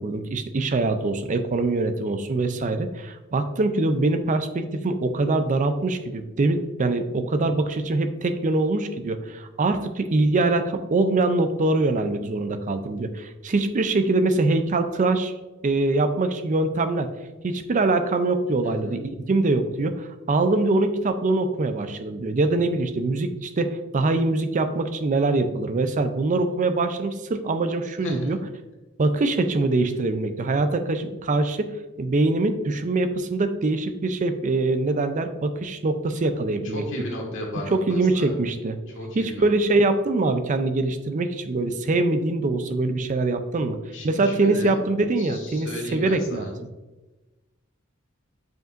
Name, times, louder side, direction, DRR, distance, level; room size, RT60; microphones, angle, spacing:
voice 1, 0.0-15.3 15.6-17.1 17.4-28.4 29.0-31.7 32.0-36.8 37.7-38.8 39.1-43.8 44.0-46.5, right 2 dB, 35° right, 9 dB, 0.4 m, -23 dB
voice 2, 18.6-19.0 28.0-28.3 36.7-38.4 38.9-39.5 43.9-44.8 45.2-46.5, left 1 dB, 65° left, 0 dB, 1.6 m, -34 dB
7.7 x 5.2 x 2.5 m, 1.1 s
head